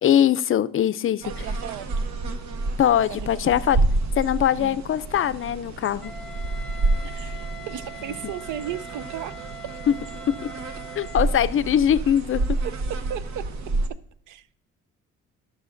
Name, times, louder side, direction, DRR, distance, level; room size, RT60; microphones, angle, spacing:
voice 1, 0.0-1.2 2.8-3.8 4.2-6.1 9.9-10.0 10.4-10.5 11.0-12.4, left 10 dB, 45° left, 0.4 m, -21 dB
sound 1, 1.2-13.9, right 2 dB, 65° right, 0.9 m, -29 dB
voice 2, 1.2-2.2 3.1-4.0 4.6-4.8 7.0-9.3 12.6-13.5 14.3-14.5, right 10 dB, 80° right, 0.6 m, -36 dB
Wind instrument woodwind instrument, 6.0-11.4, right 1 dB, ahead, 0.8 m, -42 dB
15.5 x 6.3 x 2.5 m
cardioid pair, 90°, 30 cm